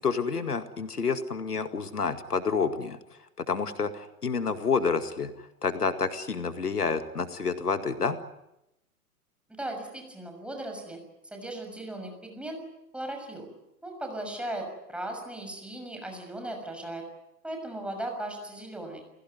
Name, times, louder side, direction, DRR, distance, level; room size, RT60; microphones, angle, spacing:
voice 1, 0.0-3.0 3.4-8.2, left 5 dB, 85° left, 10 dB, 2.1 m, -29 dB
voice 2, 9.6-11.0 11.3-12.6 12.9-13.5 13.8-17.0 17.4-19.0, right 1 dB, ahead, 3 dB, 6.4 m, -37 dB
29.5 x 17.0 x 9.5 m, 0.88 s
figure-of-eight pair, 120°, 45 cm